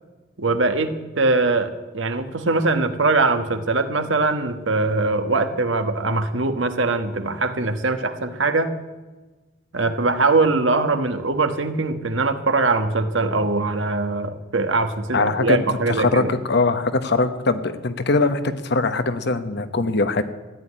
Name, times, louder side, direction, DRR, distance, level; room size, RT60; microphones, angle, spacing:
voice 1, 0.4-8.7 9.7-16.3, right 3 dB, 70° right, 8 dB, 1.4 m, -22 dB
voice 2, 15.1-15.6 15.9-20.2, left 3 dB, 60° left, 11 dB, 1.1 m, -21 dB
14.5 x 9.6 x 9.9 m, 1.2 s
head